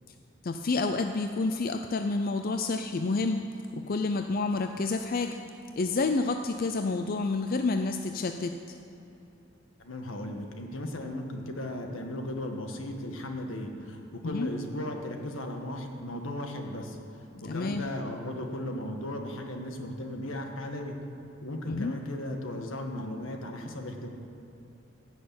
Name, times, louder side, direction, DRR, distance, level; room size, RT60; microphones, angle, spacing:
voice 1, 0.4-5.4 5.8-8.8 14.2-14.5 17.4-17.9 21.7-21.9, left 3 dB, 45° left, 6 dB, 0.5 m, -29 dB
voice 2, 9.8-17.0 17.4-21.0 21.4-24.1, left 1 dB, 80° left, 3 dB, 1.6 m, -36 dB
16.0 x 6.6 x 8.6 m, 3.0 s
head